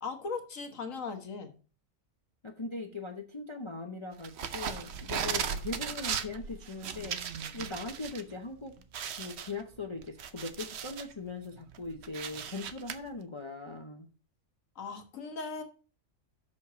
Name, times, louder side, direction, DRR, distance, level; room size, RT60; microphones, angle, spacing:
voice 1, 0.0-1.5 14.8-15.6, left 4 dB, 80° left, 6 dB, 1.7 m, -38 dB
voice 2, 2.4-7.2 7.5-8.7 9.1-14.1, left 3 dB, 30° left, 4 dB, 0.7 m, -40 dB
sound 1, 4.2-8.2 8.5-8.6 8.9-11.1 11.6-13.0, right 7 dB, 60° right, 0.9 m, -37 dB
6.5 x 5.3 x 6.7 m, 0.37 s
omnidirectional pair, 1.3 m